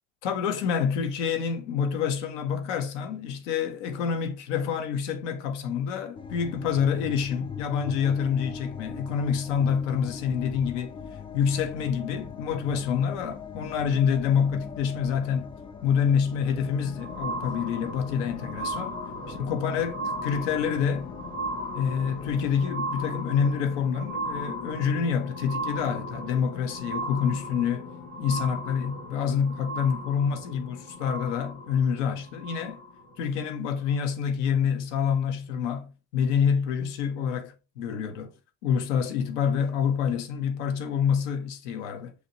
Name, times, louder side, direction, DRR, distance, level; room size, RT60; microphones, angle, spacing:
voice 1, 0.2-10.9 11.3-15.5 15.8-18.9 19.3-21.1 21.7-27.9 28.2-32.8 33.2-38.3 38.6-42.1, left 7 dB, 85° left, 0.7 m, -27 dB
sound 1, 6.1-22.7, left 6 dB, 15° left, 0.3 m, -42 dB
sound 2, 16.3-33.1 33.9-34.0, equal, 60° left, 1.4 m, -36 dB
6.4 x 2.8 x 2.8 m
hypercardioid pair, 65°, 35 cm